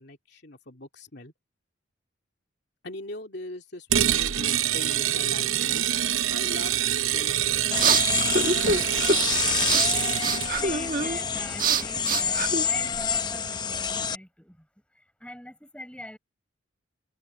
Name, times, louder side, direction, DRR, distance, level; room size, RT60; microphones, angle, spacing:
voice 1, 0.0-1.3 2.8-8.0, left 2 dB, 55° left, 2.9 m, -41 dB
sound 1, 3.9-10.5, right 11 dB, 80° right, 0.8 m, -25 dB
sound 2, 7.3-13.2, right 4 dB, 40° right, 1.4 m, -27 dB
sound 3, 7.7-14.2, left 6 dB, 20° left, 0.6 m, -28 dB
voice 2, 10.6-14.7 14.9-16.2, left 1 dB, 5° left, 7.1 m, -43 dB
head